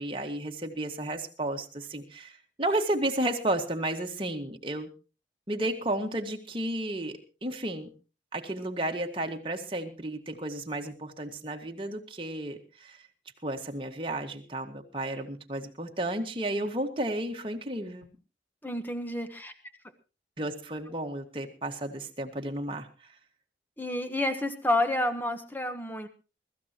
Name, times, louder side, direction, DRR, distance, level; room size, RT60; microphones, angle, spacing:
voice 1, 0.0-4.9 5.5-7.9 8.3-13.0 13.4-18.1 20.4-22.9, right 1 dB, 30° right, 3 dB, 1.8 m, -33 dB
voice 2, 18.6-19.5 23.8-26.1, left 1 dB, 10° left, 8 dB, 1.4 m, -29 dB
23.5 x 14.0 x 3.0 m, 0.33 s
head